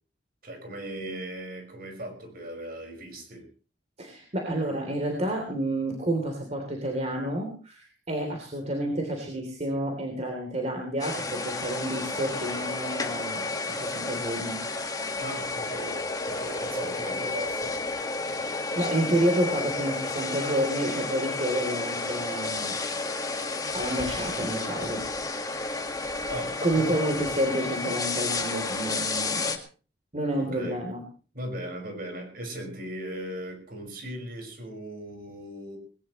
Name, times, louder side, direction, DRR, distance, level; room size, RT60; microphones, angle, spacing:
voice 1, 0.4-3.4 15.2-16.0 16.3-17.8 26.3-27.1 30.4-30.8 31.3-35.8, right 1 dB, 60° right, 4 dB, 5.7 m, -38 dB
voice 2, 4.0-14.6 18.3-22.8 23.7-25.0 26.6-29.6 30.1-31.0, right 1 dB, 40° right, 1 dB, 3.5 m, -29 dB
sound 1, 11.0-29.6, left 3 dB, 20° left, 1.8 m, -31 dB
20.0 x 19.0 x 3.2 m, 0.38 s
head